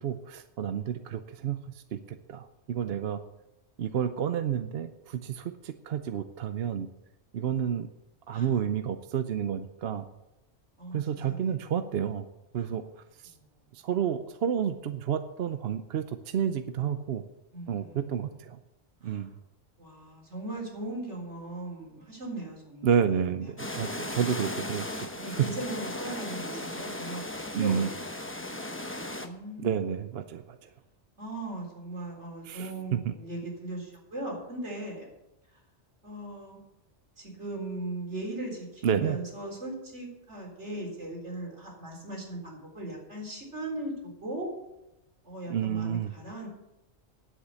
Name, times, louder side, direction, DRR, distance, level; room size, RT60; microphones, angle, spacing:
voice 1, 0.0-3.2 3.8-6.9 7.3-7.9 8.3-10.0 10.9-12.2 12.5-12.8 13.2-13.3 13.7-17.2 17.7-18.6 19.0-19.3 22.8-25.4 27.5-27.9 29.6-30.7 32.4-33.1 38.8-39.2 45.5-46.1, right 8 dB, 65° right, 10 dB, 0.8 m, -30 dB
voice 2, 13.2-13.6 17.5-18.3 19.0-19.2 19.8-22.9 23.4-23.5 25.2-27.2 27.5-28.1 28.4-28.7 29.2-29.9 31.2-35.1 36.0-36.6 37.2-43.9 44.2-44.5 45.2-46.5, right 2 dB, 85° right, -2 dB, 4.3 m, -39 dB
sound 1, 23.6-29.3, left 1 dB, 10° left, 0.8 m, -36 dB
9.9 x 8.2 x 8.2 m, 0.93 s
omnidirectional pair, 1.2 m